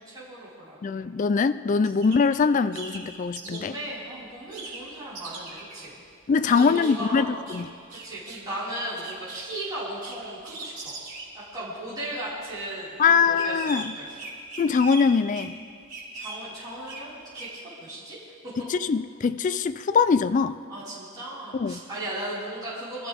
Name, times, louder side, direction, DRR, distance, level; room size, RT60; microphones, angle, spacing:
voice 1, 0.0-1.0 3.4-6.0 6.4-7.4 7.9-10.9 11.3-14.2 16.1-18.2 20.7-23.1, right 1 dB, 20° right, -13 dB, 5.1 m, -36 dB
voice 2, 0.8-3.7 6.3-7.7 13.0-13.9 14.6-15.6 18.7-20.6 21.5-21.8, left 5 dB, 35° left, 12 dB, 0.3 m, -22 dB
sound 1, 2.0-2.2 2.7-3.6 4.5-4.8 5.2-5.9 6.5-7.0 7.5-7.6 7.9-8.5 8.8-9.4 10.0-10.1 10.5-11.5 12.2-12.6 13.4-13.9 14.2-15.0 15.3-15.5 15.9-16.4 16.9-17.1 17.3-17.5, right 3 dB, 40° right, 3.1 m, -39 dB
24.5 x 14.0 x 3.6 m, 2.3 s
head